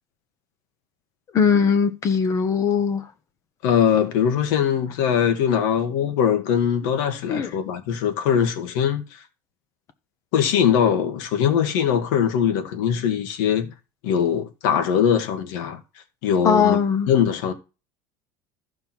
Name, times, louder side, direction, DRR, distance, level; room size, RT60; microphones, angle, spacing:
voice 1, 1.3-3.0 7.3-7.5 16.4-17.1, left 6 dB, 30° left, 1.1 m, -20 dB
voice 2, 3.6-9.0 10.3-13.7 14.0-15.8 16.2-16.8 17.1-17.5, left 8 dB, 80° left, 2.0 m, -21 dB
14.0 x 5.5 x 4.6 m
cardioid pair, 165°, 10 cm